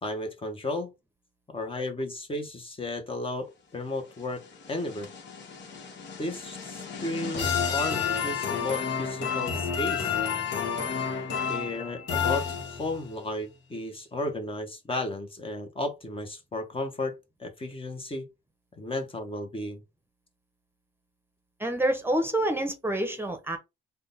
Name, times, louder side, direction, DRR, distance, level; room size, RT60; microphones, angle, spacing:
voice 1, 0.0-0.9 1.5-5.1 6.2-10.2 11.5-18.3 18.8-19.8, left 2 dB, 25° left, 0.9 m, -34 dB
sound 1, 4.2-13.1, left 7 dB, 65° left, 1.1 m, -31 dB
voice 2, 21.6-23.6, right 1 dB, 10° right, 0.8 m, -27 dB
3.6 x 2.2 x 3.9 m
cardioid pair, 90°, 20 cm